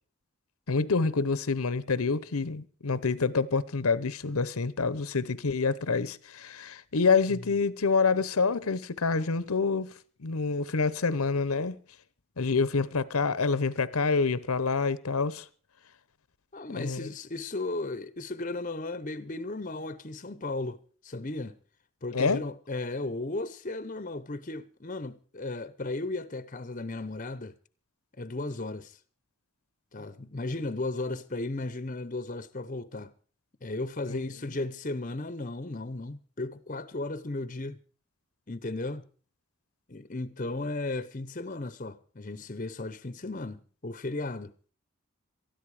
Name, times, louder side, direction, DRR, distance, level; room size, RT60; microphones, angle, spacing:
voice 1, 0.7-9.9 10.2-11.8 12.4-15.5 16.8-17.1 22.1-22.4 34.1-34.2, left 4 dB, 85° left, 0.9 m, -27 dB
voice 2, 16.5-21.6 22.0-27.6 28.2-29.0 29.9-33.1 33.6-37.8 38.5-39.1 39.9-44.5, left 2 dB, 35° left, 0.8 m, -35 dB
19.5 x 13.0 x 4.9 m
head